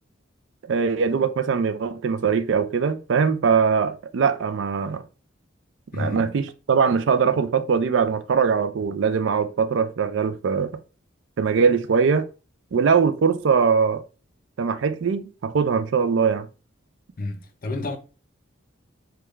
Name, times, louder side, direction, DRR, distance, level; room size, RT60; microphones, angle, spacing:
voice 1, 0.6-5.0 5.9-10.7 11.4-12.3 12.7-14.0 14.6-16.5, right 6 dB, 65° right, 0.4 m, -21 dB
voice 2, 5.9-6.3 17.2-18.0, left 2 dB, 45° left, 0.5 m, -30 dB
3.5 x 2.2 x 3.1 m
head